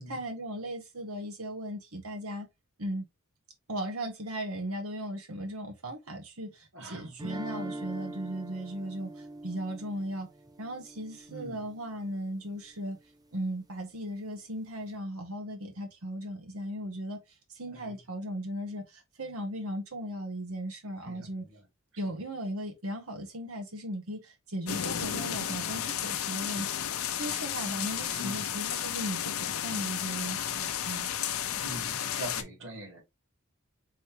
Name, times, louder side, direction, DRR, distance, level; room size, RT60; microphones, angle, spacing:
voice 1, 0.1-2.5 2.8-3.1 3.7-10.3 10.6-13.0 13.3-17.2 17.5-21.5 22.0-26.7 27.2-31.1, equal, 80° right, 1.4 m, -37 dB
voice 2, 6.7-7.1 11.3-11.6 17.7-18.0 21.0-21.6 22.1-22.2 28.2-28.5 31.5-33.0, right 1 dB, 60° right, 2.4 m, -43 dB
sound 1, 7.2-12.1, right 1 dB, 20° right, 0.8 m, -43 dB
sound 2, 24.7-32.4, left 9 dB, 75° left, 0.6 m, -33 dB
5.5 x 3.3 x 2.8 m
head